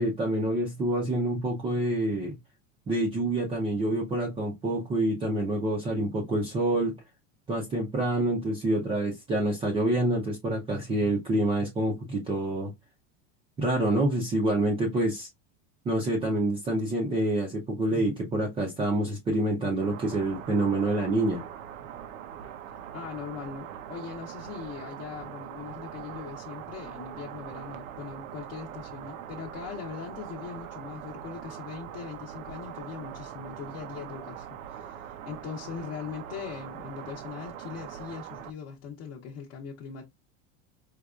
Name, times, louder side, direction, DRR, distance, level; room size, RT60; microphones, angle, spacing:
voice 1, 0.0-2.4 2.9-6.9 7.5-12.7 13.6-15.3 15.9-21.4, right 1 dB, 15° right, 0.5 m, -27 dB
sound 1, 19.8-38.5, right 9 dB, 80° right, 0.7 m, -42 dB
voice 2, 22.9-40.0, left 7 dB, 35° left, 0.8 m, -40 dB
4.8 x 2.2 x 2.3 m
supercardioid pair, 150°, 40 cm